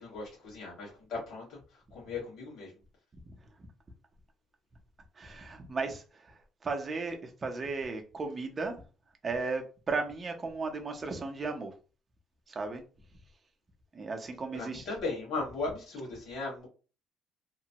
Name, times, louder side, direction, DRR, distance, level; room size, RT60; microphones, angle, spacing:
voice 1, 0.0-2.7 14.5-16.7, left 3 dB, 55° left, -4 dB, 1.6 m, -37 dB
voice 2, 5.2-8.8 9.2-11.7 12.5-12.8 13.9-15.0, right 3 dB, 25° right, 4 dB, 0.6 m, -35 dB
2.9 x 2.1 x 2.7 m, 0.34 s
cardioid pair, 150°, 0 cm